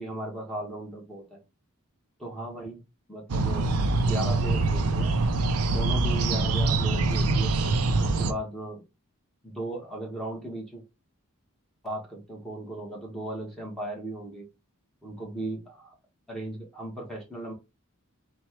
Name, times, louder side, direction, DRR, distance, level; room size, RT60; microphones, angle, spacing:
voice 1, 0.0-1.4 2.2-2.8 3.1-3.7 4.0-5.1 5.7-7.5 8.0-8.8 9.4-10.8 11.8-14.5 15.0-15.9 16.3-17.5, right 1 dB, ahead, -2 dB, 1.2 m, -36 dB
sound 1, 3.3-8.3, right 3 dB, 75° right, 0.5 m, -24 dB
4.2 x 2.3 x 4.4 m, 0.25 s
head